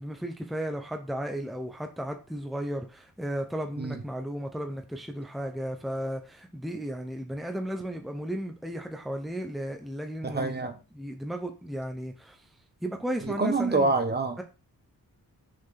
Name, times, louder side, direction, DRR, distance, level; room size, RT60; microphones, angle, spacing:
voice 1, 0.0-10.6 10.9-12.5 12.8-13.9 14.4-14.5, equal, ahead, 0.9 m, -34 dB
voice 2, 10.2-10.7 13.2-14.4, right 3 dB, 25° right, 1.1 m, -26 dB
6.6 x 4.4 x 5.8 m
wide cardioid pair, 150°, 36 cm